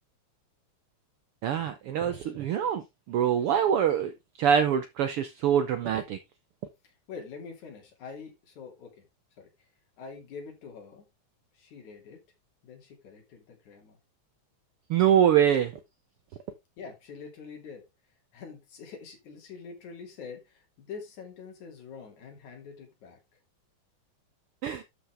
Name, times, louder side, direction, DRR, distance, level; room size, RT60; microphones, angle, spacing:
voice 1, 1.4-6.2 14.9-15.7 24.6-24.8, right 9 dB, 75° right, 1.3 m, -24 dB
voice 2, 6.8-9.1 9.4-9.5 10.0-11.0 11.5-12.2 12.6-14.0 16.8-17.8 18.3-23.2, left 5 dB, 80° left, 4.1 m, -45 dB
11.5 x 5.7 x 3.4 m
omnidirectional pair, 3.3 m